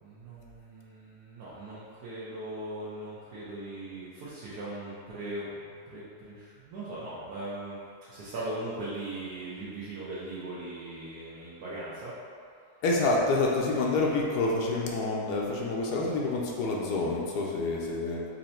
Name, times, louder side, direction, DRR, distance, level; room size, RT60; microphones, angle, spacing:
voice 1, 0.0-7.8 8.1-12.2, right 1 dB, 80° right, -9 dB, 1.4 m, -39 dB
voice 2, 12.8-18.3, left 3 dB, 85° left, -3 dB, 1.2 m, -28 dB
4.4 x 2.7 x 4.2 m, 2.3 s
omnidirectional pair, 1.7 m